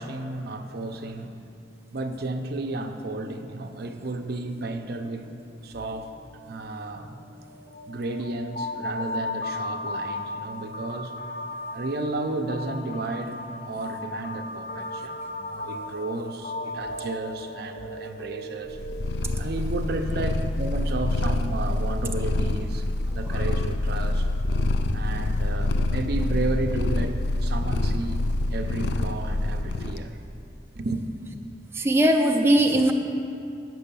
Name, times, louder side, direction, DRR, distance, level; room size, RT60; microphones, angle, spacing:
voice 1, 0.0-1.4 1.9-5.3 5.6-6.2 6.5-7.2 7.8-11.1 11.7-13.4 13.7-18.8 19.4-24.3 24.9-28.2 28.5-30.2 30.7-31.0, right 2 dB, 60° right, 6 dB, 0.6 m, -32 dB
sound 1, 4.0-5.2 5.5-5.7 5.9-20.3, left 2 dB, 50° left, 1.0 m, -37 dB
Purr, 18.7-30.0, left 2 dB, 65° left, 0.5 m, -26 dB
voice 2, 31.7-32.9, right 1 dB, 15° right, 2 dB, 0.5 m, -20 dB
9.0 x 6.2 x 6.9 m, 2.6 s
head